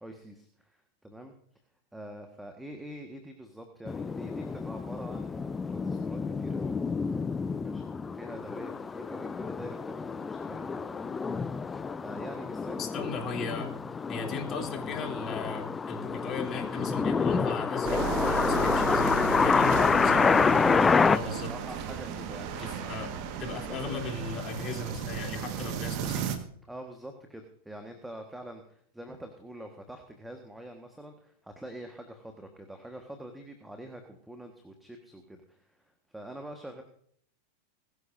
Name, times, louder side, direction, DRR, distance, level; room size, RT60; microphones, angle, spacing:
voice 1, 0.0-1.3 1.9-6.7 7.6-11.1 12.0-12.8 14.1-14.4 20.6-23.0 23.4-24.0 26.6-36.8, right 1 dB, 5° right, 4 dB, 1.6 m, -45 dB
sound 1, 3.9-21.2, left 5 dB, 15° left, 0.4 m, -28 dB
voice 2, 12.8-13.7 14.1-20.3 21.1-21.5 22.6-23.1 23.4-26.2, left 4 dB, 30° left, 2 dB, 3.3 m, -37 dB
sound 2, 17.8-26.4, right 8 dB, 45° right, 1.6 m, -34 dB
21.0 x 13.0 x 2.7 m, 0.65 s
figure-of-eight pair, 90°, 0 cm